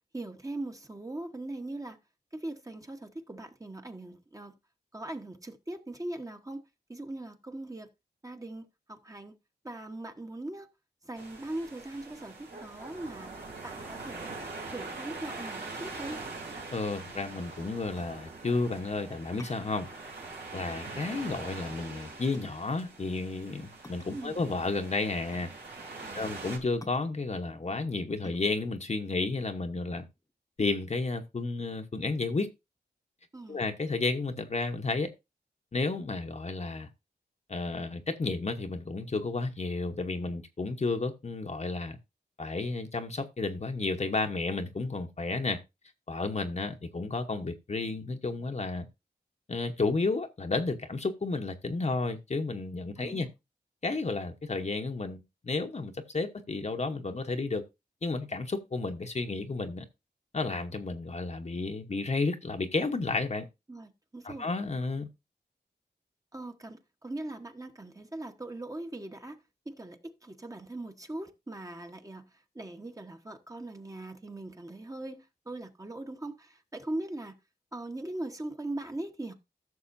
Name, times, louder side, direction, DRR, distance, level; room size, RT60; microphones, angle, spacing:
voice 1, 0.1-2.0 2.3-4.5 4.9-7.9 8.2-9.3 9.6-10.7 11.0-13.3 13.6-14.3 14.7-16.2 24.1-24.4 26.0-26.3 33.3-33.6 53.0-53.3 63.7-64.5 66.3-69.4 69.6-77.3 77.7-79.3, right 1 dB, 20° right, 1.1 m, -40 dB
sound 1, 11.2-26.6, right 3 dB, 85° right, 3.0 m, -43 dB
voice 2, 16.7-19.9 20.5-25.5 26.1-30.1 30.6-32.5 33.5-35.1 35.7-36.9 37.5-42.0 42.4-45.6 46.1-48.9 49.5-53.3 53.8-57.6 58.0-59.8 60.3-63.5 64.2-65.1, left 3 dB, 40° left, 1.0 m, -32 dB
sound 2, 17.9-30.3, left 1 dB, 20° left, 1.0 m, -54 dB
14.5 x 6.3 x 2.6 m
wide cardioid pair, 85°, 17 cm